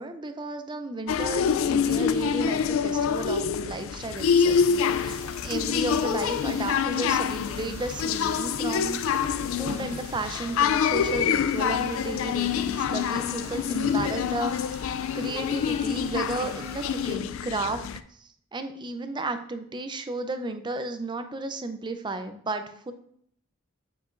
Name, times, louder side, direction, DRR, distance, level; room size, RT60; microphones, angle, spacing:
voice 1, 0.0-4.6 5.0-9.0 9.6-17.9 18.2-22.9, right 3 dB, 20° right, 8 dB, 0.5 m, -33 dB
sound 1, 1.1-18.0, left 7 dB, 70° left, 0.3 m, -26 dB
sound 2, 4.2-17.1, right 2 dB, 60° right, 1.5 m, -47 dB
9.0 x 4.9 x 2.5 m, 0.67 s
head